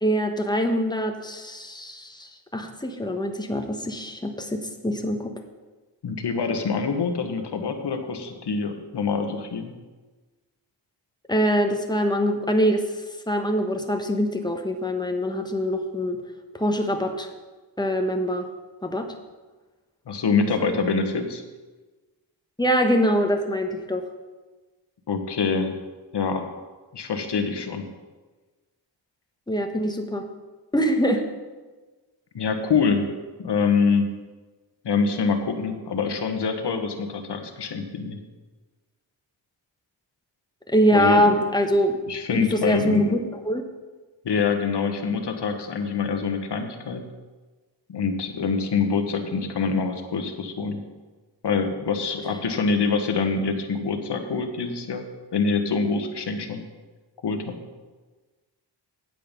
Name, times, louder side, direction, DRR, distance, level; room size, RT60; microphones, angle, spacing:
voice 1, 0.0-5.3 11.3-16.2 16.5-17.3 17.8-18.5 18.8-19.1 20.6-20.8 22.6-24.0 29.5-30.3 30.7-31.2 40.7-42.0 42.3-43.6, equal, 10° left, 4 dB, 1.1 m, -24 dB
voice 2, 6.0-9.7 20.1-21.4 25.1-25.7 26.1-26.4 26.9-27.8 32.3-33.1 33.4-34.1 34.8-38.2 40.9-41.4 42.1-43.2 44.2-47.0 47.9-50.8 51.4-55.0 55.3-56.6 57.2-57.6, left 5 dB, 60° left, 6 dB, 1.3 m, -25 dB
8.9 x 7.8 x 5.3 m, 1.3 s
cardioid pair, 80°, 45 cm